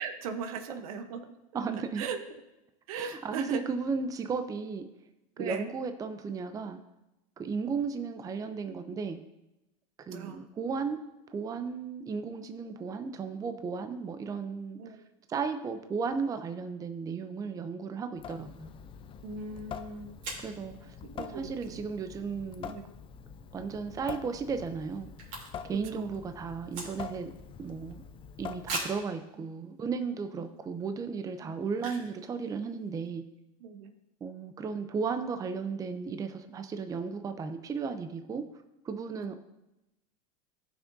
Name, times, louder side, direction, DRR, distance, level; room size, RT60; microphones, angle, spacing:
voice 1, 0.0-1.3 1.9-2.2 2.9-3.7 5.4-5.7 10.1-10.5 14.8-15.0 18.3-18.4 19.2-20.2 21.0-21.8 22.7-22.8 25.7-26.1 29.4-29.5 31.4-31.7 33.6-33.9 39.1-39.4, right 5 dB, 75° right, 8 dB, 0.9 m, -39 dB
voice 2, 1.5-2.0 3.0-4.9 5.4-6.8 7.4-9.2 10.1-11.0 11.3-14.8 15.3-18.7 20.4-22.7 23.5-25.1 25.6-27.3 27.6-28.0 28.4-33.2 34.2-38.5 38.8-39.4, right 5 dB, 20° right, 9 dB, 0.5 m, -35 dB
Water tap faucet / Sink (filling or washing) / Drip, 18.2-29.1, left 7 dB, 30° left, 0.5 m, -45 dB
sound 1, 19.6-19.7 20.2-20.6 23.5-23.8 24.1-24.2 24.3-25.8 26.1-27.3 27.8-27.9 28.6-29.1 29.8-29.9 30.4-30.6 31.7-32.2 32.5-32.6 32.7-33.1, right 3 dB, 50° right, 3.1 m, -39 dB
14.5 x 6.0 x 2.7 m, 0.93 s
supercardioid pair, 120°, 18 cm